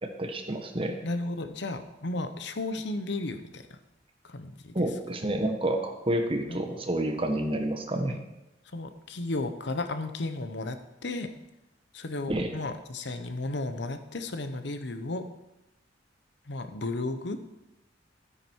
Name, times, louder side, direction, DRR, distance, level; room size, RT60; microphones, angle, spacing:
voice 1, 0.0-1.0 4.7-8.2 12.3-12.5, right 1 dB, 30° right, 5 dB, 1.4 m, -29 dB
voice 2, 1.0-3.8 4.2-4.7 6.5-6.6 8.1-8.2 8.7-10.8 11.0-11.3 11.9-15.2 16.5-17.4, left 2 dB, 70° left, 9 dB, 1.0 m, -34 dB
13.0 x 9.9 x 4.6 m, 0.93 s
head